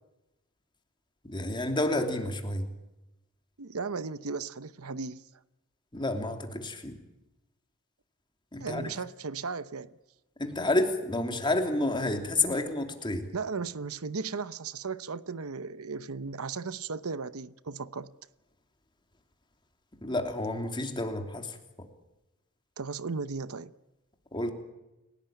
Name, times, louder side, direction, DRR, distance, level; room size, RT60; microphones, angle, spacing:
voice 1, 1.2-2.6 5.9-7.0 8.5-8.9 10.4-13.3 20.0-21.6 24.3-24.5, left 2 dB, 20° left, 3.0 m, -30 dB
voice 2, 3.6-5.2 8.6-9.9 13.3-18.1 22.8-23.7, right 4 dB, 80° right, 0.9 m, -36 dB
29.5 x 17.5 x 9.1 m
head